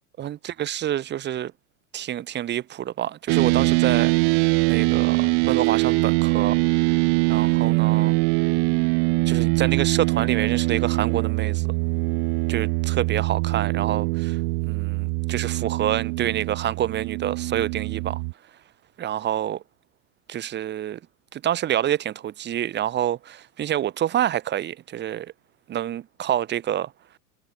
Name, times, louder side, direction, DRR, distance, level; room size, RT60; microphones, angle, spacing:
voice 1, 0.2-1.5 1.9-4.1 4.7-6.6 7.3-8.2 9.3-11.7 12.5-14.4 14.7-18.2 19.0-19.6 20.3-21.0 21.3-25.3 25.7-26.9, right 11 dB, 25° right, 1.1 m, -27 dB
sound 1, 3.3-18.3, right 40 dB or more, 45° right, 0.8 m, -22 dB
hypercardioid pair, 120°, 45 cm